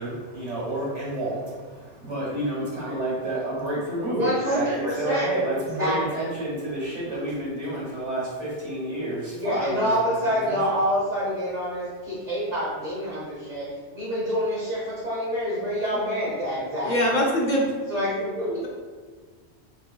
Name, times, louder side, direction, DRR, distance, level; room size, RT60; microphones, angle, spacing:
voice 1, 0.0-10.8, right 1 dB, 80° right, -7 dB, 1.6 m, -30 dB
voice 2, 4.0-5.3 5.8-6.3 9.3-13.7 13.9-17.2 17.9-18.7, equal, 40° right, -8 dB, 1.1 m, -27 dB
voice 3, 16.8-17.6, left 1 dB, 50° left, -2 dB, 0.6 m, -22 dB
4.1 x 4.1 x 2.3 m, 1.5 s
omnidirectional pair, 1.2 m